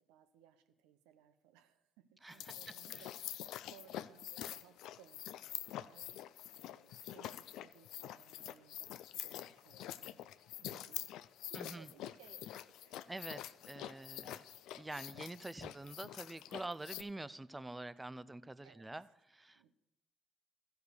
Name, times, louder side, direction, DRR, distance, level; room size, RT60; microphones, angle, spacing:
voice 1, 0.1-11.1 11.5-13.1 14.2-14.5 18.6-18.9 19.5-19.7, right 10 dB, 85° right, 0.7 m, -64 dB
voice 2, 2.2-2.5 11.5-11.9 13.1-14.5 14.7-19.7, right 2 dB, 15° right, 0.5 m, -46 dB
sound 1, 2.3-17.0, left 12 dB, 75° left, 0.3 m, -46 dB
13.5 x 4.8 x 6.5 m
hypercardioid pair, 55°, 0 cm